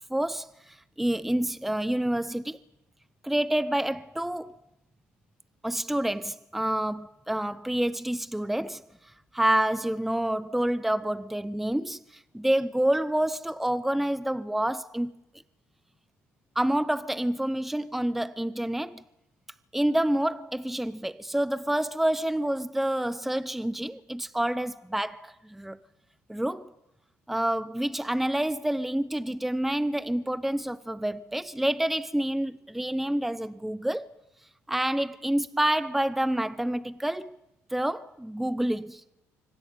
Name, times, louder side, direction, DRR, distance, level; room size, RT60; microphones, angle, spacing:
voice 1, 0.1-0.5 1.0-2.6 3.2-4.6 5.6-8.8 9.3-12.0 12.3-15.1 16.6-19.0 19.7-25.8 26.3-26.7 27.3-34.1 34.7-37.4 37.7-39.0, right 1 dB, 5° right, 0.7 m, -28 dB
25.0 x 14.0 x 9.4 m
cardioid pair, 100°, 6 cm